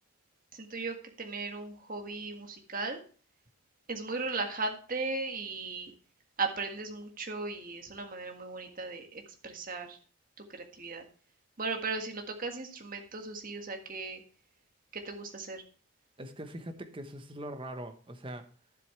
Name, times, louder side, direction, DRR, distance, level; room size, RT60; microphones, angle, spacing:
voice 1, 0.5-3.0 3.9-5.9 6.4-10.0 10.5-11.0 11.6-14.2 14.9-15.6, right 3 dB, 40° right, 4 dB, 1.7 m, -37 dB
voice 2, 16.2-18.5, right 1 dB, 25° right, 7 dB, 1.0 m, -42 dB
11.5 x 7.7 x 3.2 m, 0.40 s
head